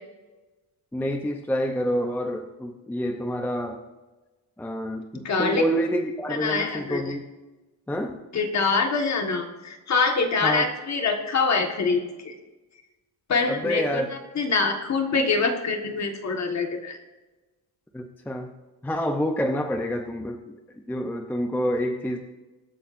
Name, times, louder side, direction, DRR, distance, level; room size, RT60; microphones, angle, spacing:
voice 1, 0.9-3.8 4.6-7.3 7.9-8.2 10.4-10.7 13.5-14.1 17.9-18.5 18.8-20.6 20.9-22.2, equal, 5° left, 4 dB, 0.6 m, -28 dB
voice 2, 5.2-5.7 6.3-7.1 8.3-12.3 13.3-17.0, left 4 dB, 40° left, 4 dB, 1.6 m, -25 dB
24.0 x 8.7 x 2.5 m, 1.2 s
wide cardioid pair, 175°, 40 cm